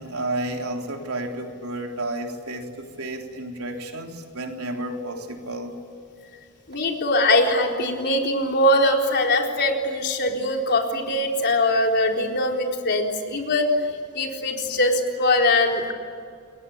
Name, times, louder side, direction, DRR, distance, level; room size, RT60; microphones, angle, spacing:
voice 1, 0.0-5.8, right 1 dB, 75° right, 2 dB, 3.7 m, -31 dB
voice 2, 6.7-15.9, left 1 dB, 50° left, 2 dB, 4.1 m, -22 dB
29.5 x 22.0 x 8.7 m, 2.3 s
head